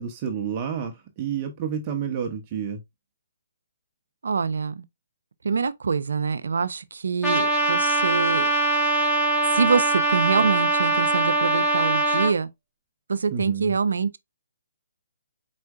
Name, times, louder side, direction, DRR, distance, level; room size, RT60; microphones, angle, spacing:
voice 1, 0.0-2.8 13.3-13.8, right 7 dB, 30° right, 0.8 m, -30 dB
voice 2, 4.2-4.8 5.4-8.5 9.5-12.5 13.1-14.2, right 5 dB, 70° right, 0.5 m, -25 dB
Trumpet, 7.2-12.3, right 2 dB, 10° left, 1.5 m, -22 dB
4.5 x 4.2 x 2.3 m
figure-of-eight pair, 135°, 0 cm